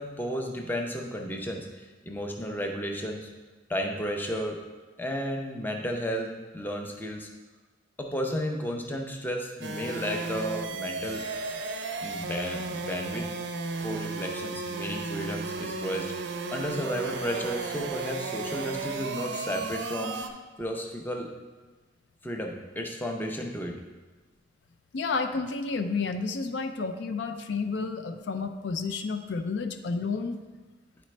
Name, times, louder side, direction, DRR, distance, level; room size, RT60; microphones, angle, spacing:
voice 1, 0.0-3.3 3.7-4.6 5.0-7.3 8.0-11.2 12.0-13.3 13.8-20.2 20.6-21.3 22.2-23.8, equal, 10° left, 2 dB, 0.5 m, -33 dB
sound 1, 9.6-20.3, right 3 dB, 70° right, 0.5 m, -34 dB
voice 2, 24.9-30.4, left 4 dB, 70° left, 7 dB, 0.4 m, -31 dB
10.0 x 4.1 x 3.2 m, 1.3 s
head